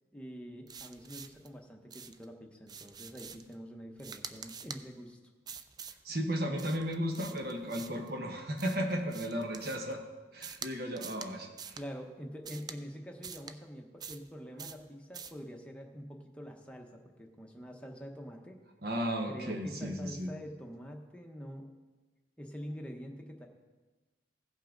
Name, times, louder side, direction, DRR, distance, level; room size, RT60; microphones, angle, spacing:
voice 1, 0.1-5.2 11.7-18.6 19.3-21.7 22.4-23.5, equal, 5° left, 1 dB, 0.9 m, -45 dB
sound 1, 0.7-1.5 1.9-2.3 2.7-3.5 4.0-4.8 5.5-6.0 6.6-8.1 8.6-9.9 10.4-10.7 11.0-11.3 11.6-11.8 12.4-12.8 13.2-13.5 14.0-14.3 14.6-14.8 15.1-15.4, right 6 dB, 20° right, 0.3 m, -46 dB
voice 2, 6.0-10.0 10.3-11.8 18.8-20.3, equal, 55° right, 3 dB, 1.3 m, -34 dB
16.5 x 5.6 x 3.8 m, 1.3 s
head